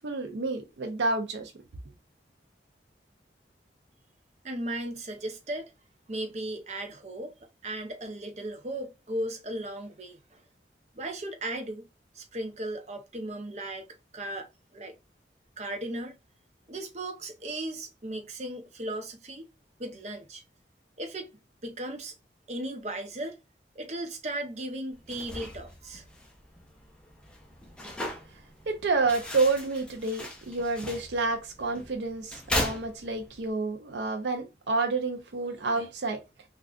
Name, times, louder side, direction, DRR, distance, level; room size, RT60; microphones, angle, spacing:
voice 1, 0.0-1.5 28.7-36.2, right 3 dB, 80° right, 0.5 m, -29 dB
voice 2, 4.4-5.7 6.1-7.3 7.6-10.4 10.9-11.9 12.1-13.9 14.1-14.9 15.6-16.2 16.7-19.5 19.8-20.4 21.0-21.3 21.6-22.1 22.5-23.4 23.8-26.0, right 1 dB, 40° right, 0.6 m, -36 dB
sound 1, 24.9-33.5, left 1 dB, 5° left, 0.5 m, -38 dB
3.6 x 2.3 x 2.3 m
head